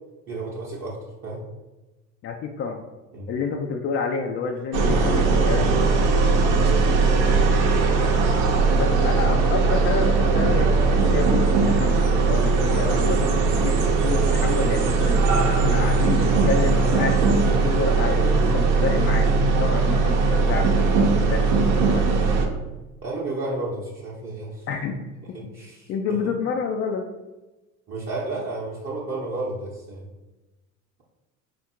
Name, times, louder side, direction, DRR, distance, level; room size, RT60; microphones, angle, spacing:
voice 1, 0.3-1.4 3.1-3.3 6.5-6.9 23.0-24.6 25.3-26.2 27.9-30.0, right 2 dB, 30° right, -5 dB, 0.8 m, -32 dB
voice 2, 2.2-2.8 3.3-5.9 8.8-13.7 14.0-15.2 15.5-22.2 24.7-25.0 25.3-25.5 25.9-27.1, left 5 dB, 35° left, 2 dB, 0.4 m, -29 dB
sound 1, 4.7-22.5, right 4 dB, 65° right, 0.8 m, -19 dB
3.5 x 2.5 x 4.3 m, 1.1 s
hypercardioid pair, 85°, 42 cm